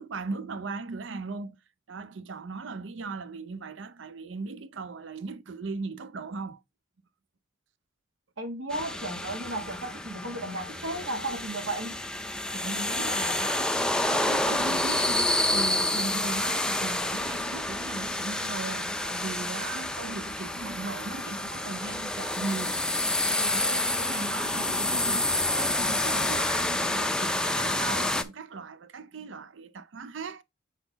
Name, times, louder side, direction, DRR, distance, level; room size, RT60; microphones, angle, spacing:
voice 1, 0.0-1.6 1.9-6.6 12.5-22.8 23.2-30.4, right 4 dB, 65° right, 0.6 m, -38 dB
voice 2, 8.4-12.0, right 1 dB, 80° right, 1.5 m, -34 dB
sound 1, 8.7-28.2, left 1 dB, 5° left, 0.4 m, -29 dB
6.8 x 4.1 x 4.0 m
head